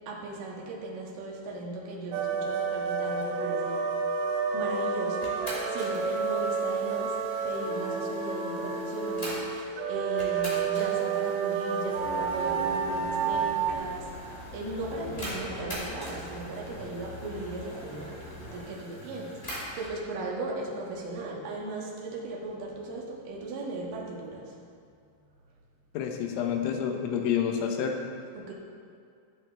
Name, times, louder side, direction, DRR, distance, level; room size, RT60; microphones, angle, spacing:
voice 1, 0.1-3.8 4.5-7.2 7.4-9.6 9.9-24.6 28.3-28.5, right 2 dB, 60° right, -3 dB, 2.4 m, -37 dB
sound 1, 2.1-13.7, right 5 dB, 85° right, 2.9 m, -30 dB
sound 2, 5.2-9.7 10.2-20.0, equal, 25° left, 1.4 m, -44 dB
sound 3, 11.9-18.6, left 1 dB, 50° left, 4.3 m, -43 dB
voice 2, 25.9-27.9, left 8 dB, 80° left, 3 dB, 3.3 m, -28 dB
15.5 x 7.7 x 3.4 m, 2.3 s
omnidirectional pair, 5.5 m